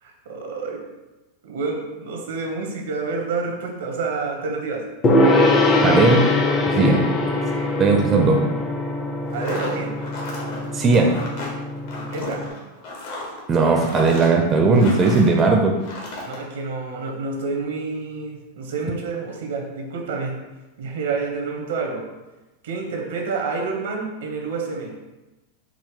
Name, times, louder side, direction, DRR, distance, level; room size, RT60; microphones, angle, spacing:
voice 1, 0.0-0.8 1.4-4.8 9.3-10.0 12.1-12.4 16.2-20.4 20.8-22.1 22.6-24.9, right 4 dB, 75° right, 1 dB, 0.9 m, -28 dB
Gong, 5.0-12.5, left 2 dB, 25° left, 0.6 m, -22 dB
voice 2, 5.8-6.3 6.7-7.0 7.8-8.4 10.7-11.2 13.5-15.7, right 3 dB, 30° right, 1 dB, 0.5 m, -17 dB
sound 1, 9.2-15.4 15.8-16.4, left 2 dB, 60° left, 1.2 m, -34 dB
4.7 x 2.1 x 3.7 m, 1.1 s
hypercardioid pair, 115°, 0 cm